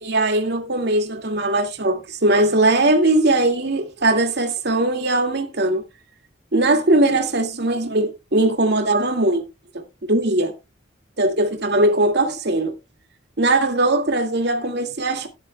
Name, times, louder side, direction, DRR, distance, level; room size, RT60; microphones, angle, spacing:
voice 1, 0.0-5.8 6.5-9.4 9.7-9.8 10.1-10.5 11.2-12.8 13.4-15.3, right 2 dB, 60° right, 2.2 m, -20 dB
13.5 x 11.0 x 2.3 m
head